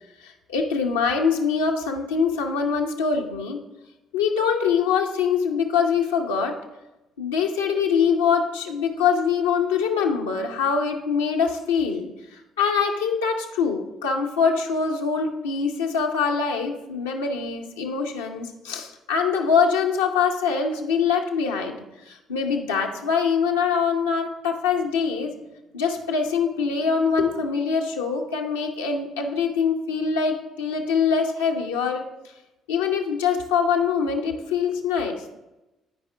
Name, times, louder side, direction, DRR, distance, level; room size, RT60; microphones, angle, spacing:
voice 1, 0.2-3.6 4.1-6.6 7.2-21.8 22.1-25.4 25.7-32.1 32.7-35.2, left 6 dB, 90° left, 1 dB, 0.8 m, -24 dB
12.5 x 4.9 x 3.3 m, 0.98 s
hypercardioid pair, 50°, 0 cm